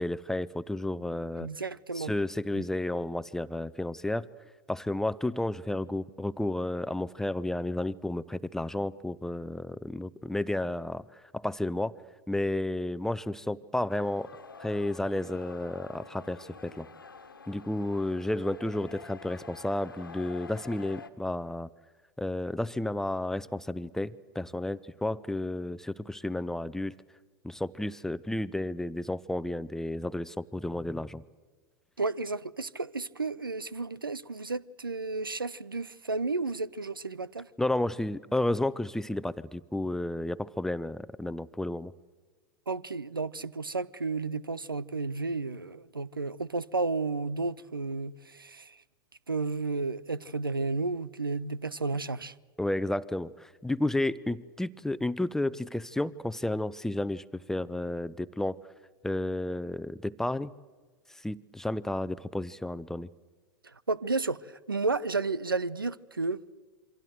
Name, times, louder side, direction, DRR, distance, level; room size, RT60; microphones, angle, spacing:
voice 1, 0.0-1.5 1.9-4.3 4.7-11.9 12.3-14.3 14.6-16.9 17.5-21.7 22.2-27.0 27.4-31.2 37.6-41.9 52.6-58.6 59.0-60.5 61.1-63.1, left 1 dB, 5° left, 0.8 m, -32 dB
voice 2, 1.4-2.1 2.5-2.6 32.0-37.5 42.7-48.8 49.3-52.3 63.6-66.4, right 3 dB, 85° right, 0.8 m, -32 dB
sound 1, 13.9-21.1, left 4 dB, 85° left, 1.7 m, -48 dB
27.5 x 25.0 x 7.9 m
figure-of-eight pair, 90°, 11 cm